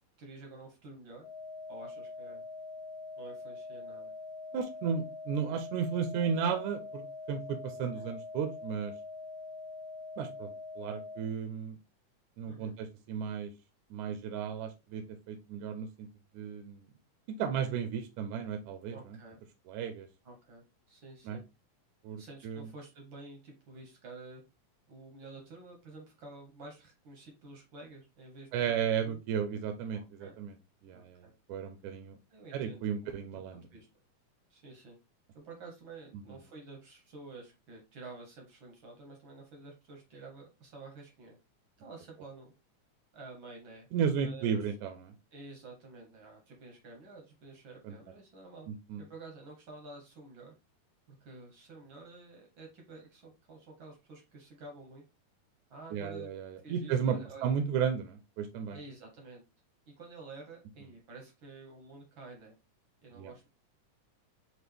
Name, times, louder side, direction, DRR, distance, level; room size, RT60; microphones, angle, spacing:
voice 1, 0.2-1.3 1.7-2.4 3.2-4.1 7.8-8.1 12.5-12.7 18.9-19.4 20.2-21.4 22.2-24.4 24.9-29.2 29.9-30.4 30.9-31.3 32.3-32.9 33.3-33.9 34.5-35.0 35.3-41.4 41.8-42.5 43.1-43.9 44.2-44.7 45.3-48.7 49.0-50.5 51.1-55.0 55.7-56.3 56.6-57.5 58.7-59.4 59.9-62.6 63.0-63.5, right 3 dB, 65° right, 1 dB, 1.3 m, -50 dB
sound 1, 1.2-11.2, left 3 dB, 60° left, 1.3 m, -44 dB
voice 2, 4.5-7.0 7.3-8.9 10.2-11.8 12.4-13.5 13.9-16.1 16.3-16.9 17.3-19.2 19.7-20.1 21.3-21.4 22.0-22.7 28.5-30.6 30.8-32.2 32.5-33.6 36.3-36.4 43.9-45.1 47.8-47.9 48.7-49.0 55.9-58.8 63.2-63.3, right 7 dB, 80° right, 7 dB, 1.9 m, -34 dB
6.0 x 2.5 x 3.3 m, 0.26 s
omnidirectional pair, 3.7 m